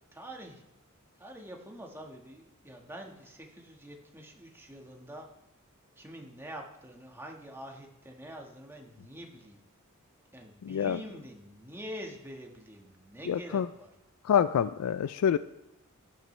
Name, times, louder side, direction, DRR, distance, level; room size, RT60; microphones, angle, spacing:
voice 1, 0.1-0.6 1.2-5.3 6.0-9.6 10.3-13.9, equal, 10° right, 1 dB, 1.4 m, -46 dB
voice 2, 10.6-11.0 13.3-13.7 14.2-15.4, left 8 dB, 85° left, 15 dB, 0.3 m, -26 dB
16.5 x 11.0 x 3.2 m, 0.89 s
head